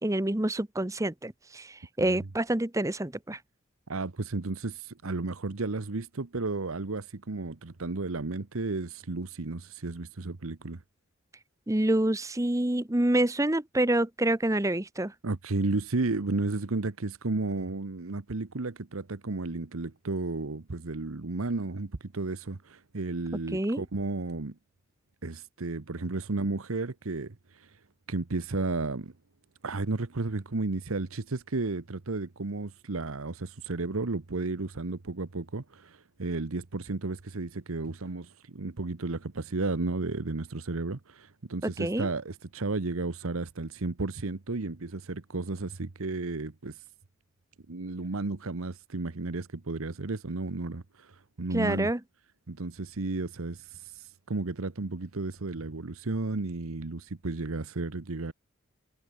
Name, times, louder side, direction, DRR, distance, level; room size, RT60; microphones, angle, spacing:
voice 1, 0.0-1.7 2.0-3.4 11.7-15.1 23.5-23.8 41.6-42.1 51.5-52.0, right 1 dB, 15° right, 0.8 m, -27 dB
voice 2, 3.9-10.8 15.2-24.5 25.2-27.7 28.1-29.1 29.6-46.8 47.7-51.9 52.5-58.3, right 3 dB, 80° right, 1.0 m, -33 dB
head